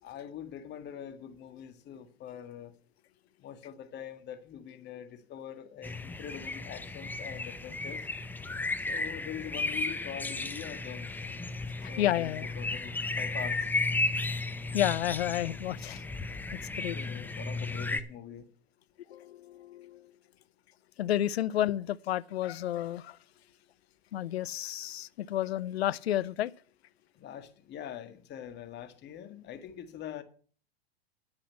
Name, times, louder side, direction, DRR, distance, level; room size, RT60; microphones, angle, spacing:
voice 1, 0.0-2.7 3.4-8.1 8.9-11.1 11.9-13.7 16.9-18.5 27.1-30.2, left 9 dB, 35° left, 1.7 m, -44 dB
sound 1, 5.8-18.0, left 3 dB, 5° left, 0.7 m, -34 dB
voice 2, 11.8-12.5 14.7-16.0 16.5-17.0 19.1-20.0 21.0-23.2 24.1-26.5, left 12 dB, 80° left, 0.6 m, -31 dB
10.5 x 5.7 x 8.3 m
hypercardioid pair, 105°, 31 cm